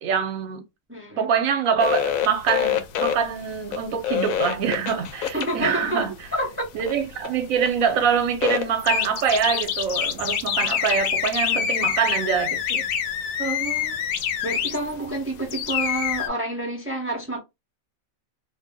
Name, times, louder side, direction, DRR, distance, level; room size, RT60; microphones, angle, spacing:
voice 1, 0.0-0.6 1.2-6.1 6.7-12.8, right 7 dB, 75° right, 1.0 m, -24 dB
voice 2, 0.9-1.3 5.3-6.7 13.4-14.0 14.4-17.4, right 1 dB, 15° right, 0.5 m, -29 dB
sound 1, 1.8-16.3, left 8 dB, 75° left, 1.0 m, -26 dB
2.6 x 2.1 x 3.5 m
omnidirectional pair, 1.5 m